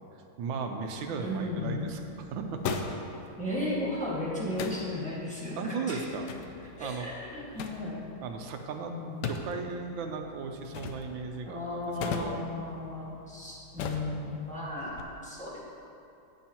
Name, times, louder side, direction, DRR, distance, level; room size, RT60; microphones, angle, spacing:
voice 1, 0.4-2.0 2.3-2.8 5.6-7.1 8.2-8.9 9.2-12.6, right 4 dB, 85° right, 4 dB, 1.5 m, -36 dB
sound 1, 0.9-15.0, left 4 dB, 70° left, 1.1 m, -41 dB
voice 2, 1.2-2.0 3.4-5.6 5.9-6.0 6.8-6.9 7.3-8.1 8.9-9.1 11.5-15.6, left 2 dB, 5° left, -8 dB, 1.6 m, -34 dB
15.0 x 5.5 x 3.0 m, 2.7 s
omnidirectional pair, 2.1 m